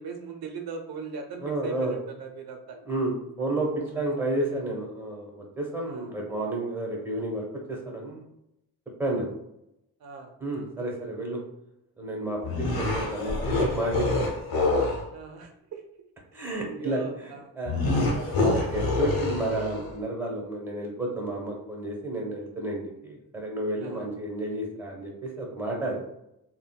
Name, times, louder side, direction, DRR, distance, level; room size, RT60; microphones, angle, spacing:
voice 1, 0.0-2.8 4.1-4.2 5.9-6.1 10.0-10.3 15.1-15.8 16.3-17.5 23.8-24.1, right 4 dB, 75° right, 4 dB, 0.6 m, -40 dB
voice 2, 1.4-1.9 2.9-8.3 9.0-9.3 10.4-11.4 12.0-14.3 16.3-17.8 18.1-26.0, right 1 dB, 5° right, -2 dB, 1.0 m, -31 dB
sound 1, 12.4-15.1 17.7-20.0, left 2 dB, 75° left, 0.9 m, -26 dB
3.6 x 2.2 x 2.3 m, 0.82 s
cardioid pair, 85°, 37 cm